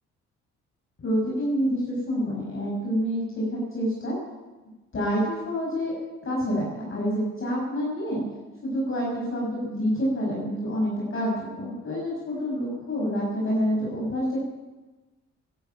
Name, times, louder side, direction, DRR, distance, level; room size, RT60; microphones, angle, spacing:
voice 1, 1.0-4.2 4.9-5.9 6.2-8.2 8.6-14.4, equal, 45° left, -4 dB, 6.7 m, -27 dB
13.0 x 12.0 x 9.1 m, 1.2 s
cardioid pair, 90°, 30 cm